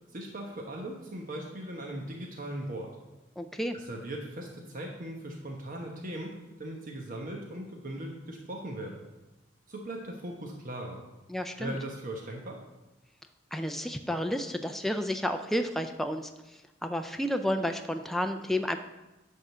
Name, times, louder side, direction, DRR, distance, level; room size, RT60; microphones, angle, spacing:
voice 1, 0.1-2.9 3.7-9.0 9.7-11.0 11.6-12.6, right 1 dB, 45° right, 0 dB, 1.0 m, -39 dB
voice 2, 3.4-3.8 11.3-11.8 13.5-16.3 16.8-18.8, equal, ahead, 6 dB, 0.4 m, -31 dB
10.5 x 3.7 x 6.7 m, 1.0 s
head